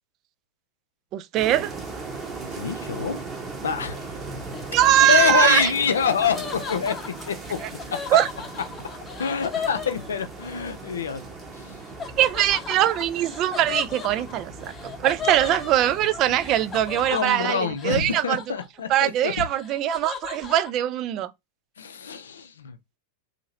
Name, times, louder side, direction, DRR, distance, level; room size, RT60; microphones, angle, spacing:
voice 1, 1.1-1.7 4.7-5.7 7.6-7.7 8.1-8.3 12.2-18.4 18.9-21.3, right 12 dB, 35° right, 0.3 m, -22 dB
sound 1, 1.3-17.1, right 3 dB, 20° right, 0.9 m, -38 dB
voice 2, 2.5-3.2 3.6-4.2 5.0-7.0 7.3-7.6 7.9-8.0 9.2-11.2 11.5-11.8 17.1-19.3 21.8-22.8, left 6 dB, 65° left, 0.5 m, -26 dB
Laughter, 4.5-10.6 12.0-19.0 19.3-20.7, left 6 dB, 20° left, 0.9 m, -36 dB
2.8 x 2.8 x 2.6 m
figure-of-eight pair, 90°, 0 cm